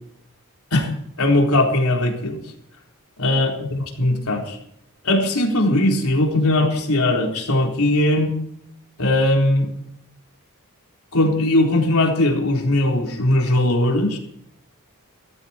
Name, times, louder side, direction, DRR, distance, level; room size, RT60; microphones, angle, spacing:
voice 1, 1.2-2.4 3.2-4.6 5.0-8.4 9.0-9.7 11.1-14.2, left 1 dB, 75° left, 1 dB, 3.9 m, -19 dB
17.0 x 14.5 x 4.4 m, 0.73 s
head